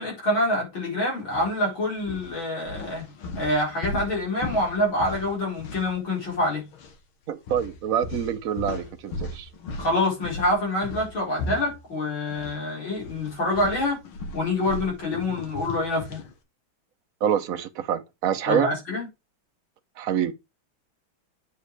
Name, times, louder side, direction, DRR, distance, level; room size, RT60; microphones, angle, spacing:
voice 1, 0.0-3.1 3.4-6.7 9.8-14.0 14.3-16.2 18.5-19.1, left 1 dB, 70° left, 5.5 m, -26 dB
sound 1, 1.3-1.5 2.0-6.5 6.7-6.9 7.5-12.6 12.9-16.3, left 2 dB, 85° left, 2.3 m, -37 dB
voice 2, 7.3-9.5 17.2-18.7 20.0-20.3, right 9 dB, 55° right, 1.1 m, -26 dB
9.0 x 4.8 x 4.7 m
omnidirectional pair, 2.2 m